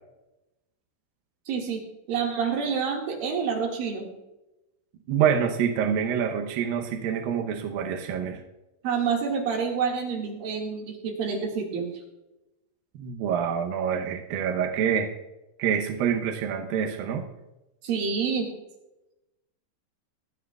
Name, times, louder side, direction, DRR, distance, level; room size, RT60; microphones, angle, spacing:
voice 1, 1.5-1.8 2.1-4.1 8.8-11.8 17.8-18.5, right 6 dB, 55° right, 0 dB, 3.3 m, -28 dB
voice 2, 5.1-8.4 12.9-15.2 15.6-17.3, right 8 dB, 90° right, 4 dB, 2.0 m, -26 dB
25.0 x 9.6 x 2.4 m, 0.97 s
omnidirectional pair, 5.5 m